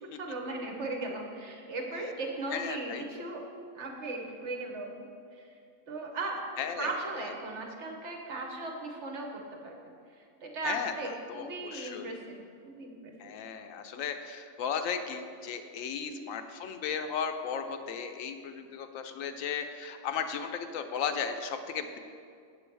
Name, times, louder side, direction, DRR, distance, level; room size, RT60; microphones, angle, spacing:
voice 1, 0.0-3.5 3.7-5.1 5.3-5.5 5.9-6.4 6.8-13.4 16.1-16.3, right 2 dB, 60° right, 1 dB, 1.2 m, -38 dB
voice 2, 2.5-3.2 6.6-6.9 10.6-10.9 11.3-12.1 13.2-22.0, left 7 dB, 75° left, 7 dB, 0.9 m, -35 dB
7.6 x 6.9 x 4.6 m, 2.3 s
omnidirectional pair, 1.4 m